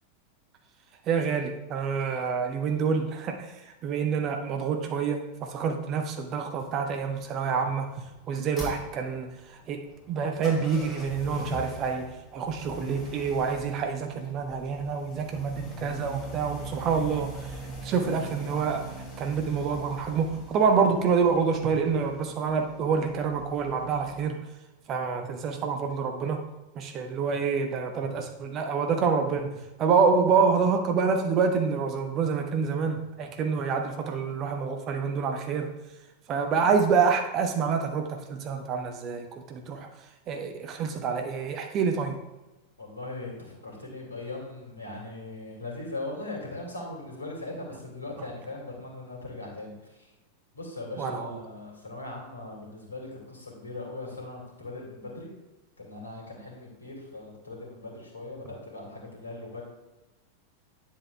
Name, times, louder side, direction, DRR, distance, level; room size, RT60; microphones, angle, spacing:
voice 1, 1.1-3.5 3.8-7.9 8.3-18.9 19.2-24.4 24.9-26.4 26.7-29.5 29.8-35.7 36.3-39.9 40.3-42.2 51.0-51.4, right 5 dB, 35° right, 5 dB, 0.9 m, -27 dB
sound 1, 6.4-24.3, right 1 dB, 25° left, 2.6 m, -43 dB
voice 2, 42.8-50.1 50.5-55.3 55.8-59.6, left 2 dB, 75° left, 0 dB, 2.3 m, -39 dB
10.0 x 7.2 x 2.3 m, 1.1 s
figure-of-eight pair, 90°, 0 cm